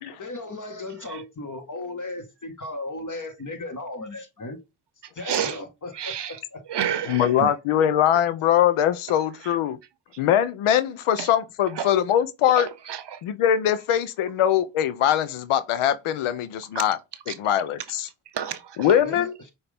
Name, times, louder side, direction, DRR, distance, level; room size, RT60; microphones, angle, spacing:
voice 1, 0.2-4.6 5.1-6.6 19.0-19.3, left 2 dB, 40° left, 1.5 m, -36 dB
voice 2, 5.2-5.6 5.9-6.4 6.7-7.5 9.4-9.5 11.2-11.3 11.7-11.9 12.5-13.2 16.7-16.8 17.3-17.4 18.3-19.0, right 9 dB, 55° right, 0.7 m, -30 dB
voice 3, 7.1-9.8 10.2-12.7 13.2-17.0 17.3-18.1 18.8-19.3, left 10 dB, 90° left, 0.6 m, -22 dB
5.8 x 2.6 x 3.4 m
supercardioid pair, 40°, 48 cm